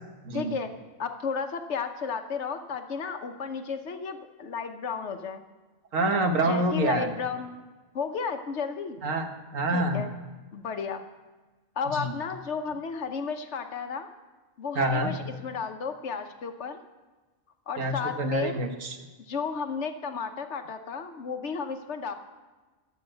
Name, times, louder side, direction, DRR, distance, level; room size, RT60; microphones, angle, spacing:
voice 1, 0.3-0.7 1.0-5.4 6.4-7.6 7.9-9.0 9.7-10.1 10.5-11.0 11.8-14.1 14.6-16.8 17.7-18.6 19.2-22.1, left 5 dB, 60° left, 7 dB, 1.1 m, -33 dB
voice 2, 5.9-7.1 9.0-10.0 11.9-12.1 14.7-15.1 17.8-19.0, right 2 dB, 70° right, 5 dB, 1.6 m, -27 dB
12.5 x 7.1 x 7.7 m, 1.3 s
omnidirectional pair, 1.4 m